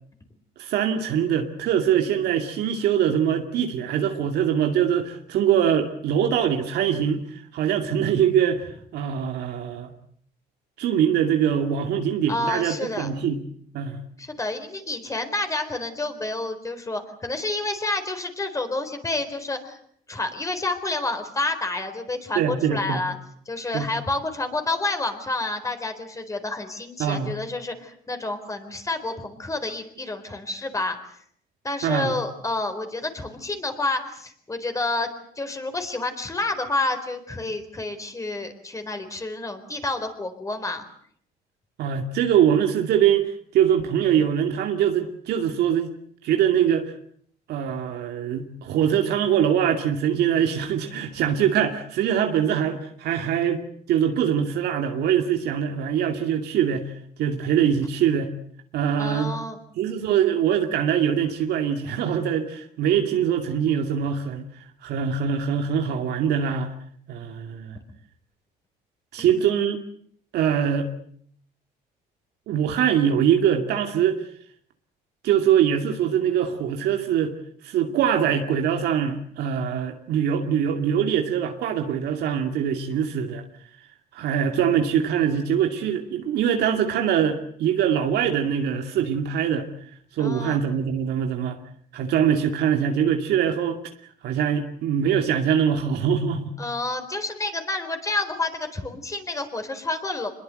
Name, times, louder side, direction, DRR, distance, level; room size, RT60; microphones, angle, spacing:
voice 1, 0.6-9.9 10.8-13.4 13.7-14.0 22.4-23.0 23.7-23.9 27.0-27.3 31.8-32.2 41.8-45.9 46.2-46.9 47.5-53.6 53.9-56.9 57.2-58.3 58.7-59.3 59.8-64.5 64.8-66.7 67.1-67.8 69.1-69.8 70.3-70.9 72.5-74.2 75.2-77.4 77.6-83.4 84.1-89.7 90.2-91.6 91.9-93.8 94.2-96.6, right 8 dB, 75° right, 4 dB, 2.4 m, -23 dB
voice 2, 12.3-13.1 14.2-19.8 20.1-23.1 23.5-31.0 31.6-35.1 35.4-40.9 59.0-59.6 69.2-69.5 90.2-90.6 96.6-100.3, left 2 dB, 20° left, 7 dB, 4.3 m, -29 dB
25.5 x 22.0 x 7.8 m, 0.63 s
cardioid pair, 110°, 17 cm